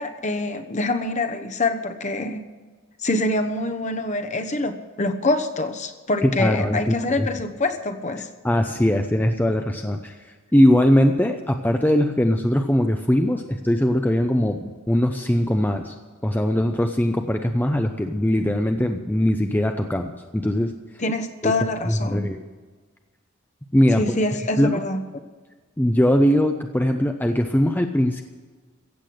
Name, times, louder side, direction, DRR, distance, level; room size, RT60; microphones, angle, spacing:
voice 1, 0.0-2.4 3.0-8.3 21.0-22.2 24.0-25.0, left 2 dB, 35° left, 7 dB, 1.0 m, -25 dB
voice 2, 6.2-7.3 8.4-10.2 10.5-15.9 16.2-20.7 21.4-21.5 21.9-22.4 23.7-24.0 24.6-24.7 25.8-28.2, equal, 10° left, 5 dB, 0.6 m, -20 dB
15.5 x 8.2 x 7.7 m, 1.4 s
head